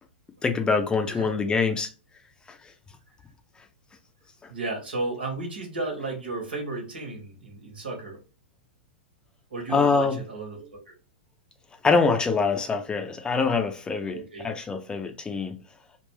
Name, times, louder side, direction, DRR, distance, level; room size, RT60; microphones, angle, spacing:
voice 1, 0.4-1.9 2.5-2.6 9.7-10.2 11.8-14.2 14.4-15.6, left 4 dB, 15° left, 0.6 m, -24 dB
voice 2, 1.1-1.6 4.5-8.2 9.5-10.8 14.1-14.5, right 2 dB, 85° right, 1.6 m, -34 dB
3.5 x 2.5 x 3.2 m
hypercardioid pair, 110°, 6 cm